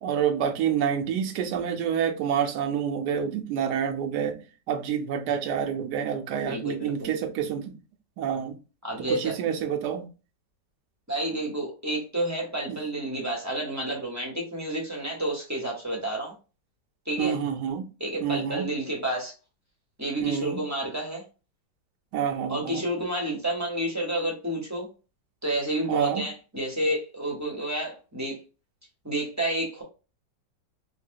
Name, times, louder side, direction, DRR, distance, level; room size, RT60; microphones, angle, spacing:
voice 1, 0.0-7.8 8.2-8.6 9.1-10.1 12.7-12.8 17.2-17.8 18.2-18.7 20.2-20.6 22.1-22.8 25.9-26.3, right 8 dB, 70° right, 1.2 m, -28 dB
voice 2, 6.4-7.1 8.8-9.4 11.1-16.3 17.1-17.4 18.0-19.3 20.0-21.2 22.5-24.9 25.4-28.4 29.0-29.8, right 1 dB, 15° right, 0.6 m, -30 dB
4.0 x 2.1 x 2.6 m
omnidirectional pair, 1.9 m